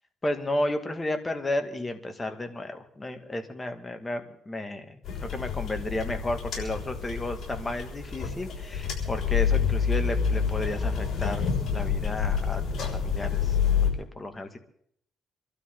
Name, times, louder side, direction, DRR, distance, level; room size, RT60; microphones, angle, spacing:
voice 1, 0.2-5.0 5.3-13.6 14.2-14.6, left 1 dB, 20° left, 6 dB, 2.1 m, -33 dB
sound 1, 5.0-13.9, left 6 dB, 60° left, 6.3 m, -28 dB
26.5 x 12.5 x 3.9 m, 0.67 s
cardioid pair, 90°, 0 cm